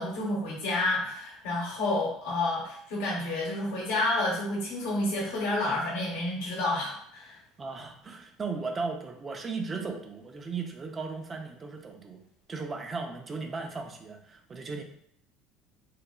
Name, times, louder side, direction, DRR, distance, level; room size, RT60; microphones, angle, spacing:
voice 1, 0.0-7.4, left 2 dB, 75° left, -4 dB, 0.8 m, -30 dB
voice 2, 7.6-12.2 12.5-14.8, right 4 dB, 30° right, 5 dB, 0.4 m, -36 dB
3.0 x 2.0 x 2.3 m, 0.69 s
hypercardioid pair, 80°, 0 cm